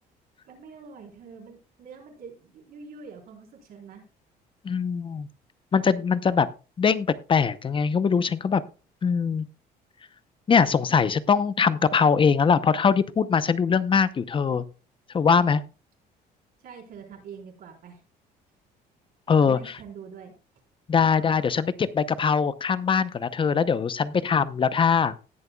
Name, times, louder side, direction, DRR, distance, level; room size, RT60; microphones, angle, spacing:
voice 1, 0.4-4.1 16.6-18.0 19.4-20.3, right 6 dB, 60° right, 0 dB, 4.2 m, -45 dB
voice 2, 4.6-5.3 5.7-6.5 6.8-8.6 9.0-9.5 10.5-14.7 15.1-15.6 19.3-19.7 20.9-25.1, left 6 dB, 30° left, 15 dB, 0.7 m, -22 dB
19.0 x 6.9 x 2.3 m, 0.33 s
cardioid pair, 110°, 17 cm